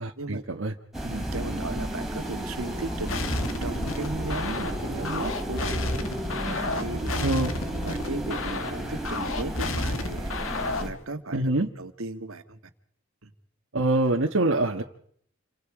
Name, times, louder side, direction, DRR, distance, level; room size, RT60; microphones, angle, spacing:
voice 1, 0.0-0.7 7.2-7.5 11.3-11.7 13.7-14.8, right 2 dB, 65° right, 2 dB, 1.5 m, -25 dB
sound 1, 0.9-10.9, right 1 dB, ahead, 4.5 m, -32 dB
voice 2, 1.0-3.2 3.6-6.0 6.4-7.2 7.7-10.3 10.8-12.6 13.2-13.3, right 2 dB, 80° right, 8 dB, 1.9 m, -36 dB
sound 2, 3.1-11.0, left 2 dB, 75° left, 1.9 m, -32 dB
28.5 x 24.5 x 5.0 m, 0.64 s
head